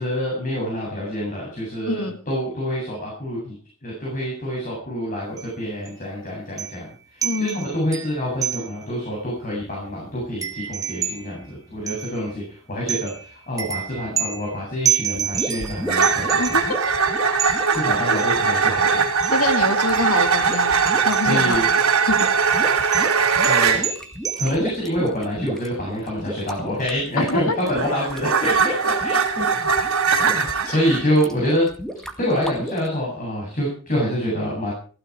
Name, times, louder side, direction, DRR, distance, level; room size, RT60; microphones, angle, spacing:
voice 1, 0.0-3.5 3.8-16.6 17.2-17.3 17.7-19.1 20.9-21.7 23.5-23.8 24.4-29.7 30.3-31.7 32.2-34.7, equal, 40° left, -3 dB, 7.9 m, -26 dB
voice 2, 1.9-2.2 7.2-7.7 16.4-16.8 17.7-18.2 19.3-20.8 21.0-21.6 22.0-22.3 27.2-27.6 30.6-30.8, left 3 dB, 75° left, 7 dB, 2.1 m, -26 dB
sound 1, 5.4-5.5 5.9-6.0 6.6-6.9 7.2-9.0 9.4-9.5 9.7-12.5 12.9-18.3 19.2-19.5 19.9-21.5 22.0-24.5, right 9 dB, 15° right, 2.0 m, -30 dB
sound 2, 15.1-32.9, equal, ahead, 2.0 m, -34 dB
sound 3, 15.9-23.9 27.2-31.0, right 5 dB, 90° right, 3.3 m, -20 dB
16.0 x 16.0 x 4.8 m, 0.40 s
head